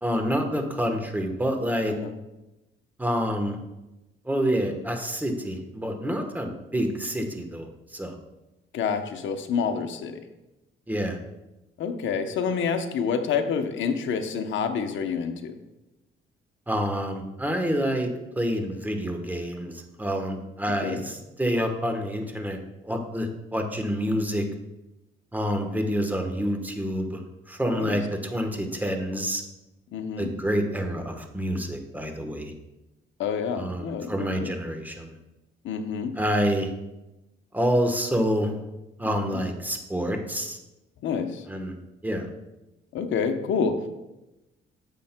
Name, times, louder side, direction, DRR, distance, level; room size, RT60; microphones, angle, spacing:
voice 1, 0.0-1.9 3.0-3.6 4.2-8.1 10.9-11.2 16.7-18.1 18.4-22.6 22.8-24.4 25.3-27.2 27.5-29.4 30.2-32.5 33.6-35.2 36.2-36.7 37.5-38.5 39.0-40.6 41.5-41.8 42.0-42.3, equal, 10° right, 4 dB, 1.1 m, -27 dB
voice 2, 8.7-10.2 11.8-15.6 20.8-21.0 27.8-28.0 29.9-30.3 33.2-34.5 35.6-36.1 39.0-39.4 41.0-41.4 42.9-43.9, left 6 dB, 75° left, 7 dB, 0.8 m, -28 dB
10.0 x 7.4 x 2.2 m, 0.99 s
cardioid pair, 90°, 20 cm